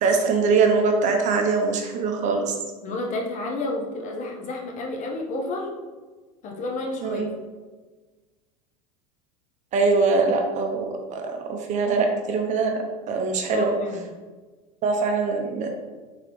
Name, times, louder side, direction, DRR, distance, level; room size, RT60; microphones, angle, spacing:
voice 1, 0.0-2.5 7.0-7.2 9.7-12.7 13.1-13.7 14.8-15.7, right 4 dB, 40° right, 3 dB, 0.6 m, -22 dB
voice 2, 2.8-5.7 6.4-7.3 13.5-14.1, left 2 dB, 40° left, 1 dB, 0.8 m, -30 dB
3.8 x 3.2 x 3.0 m, 1.3 s
hypercardioid pair, 95°, 20 cm